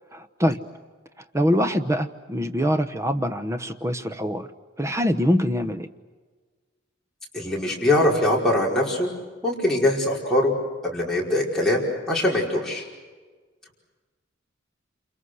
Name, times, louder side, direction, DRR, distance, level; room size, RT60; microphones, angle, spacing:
voice 1, 0.1-0.6 1.3-4.5 4.8-5.9, equal, 15° right, 8 dB, 1.0 m, -24 dB
voice 2, 7.3-9.1 9.4-10.5 10.8-12.8, left 1 dB, 5° left, -5 dB, 5.2 m, -22 dB
29.0 x 28.0 x 6.4 m, 1.4 s
head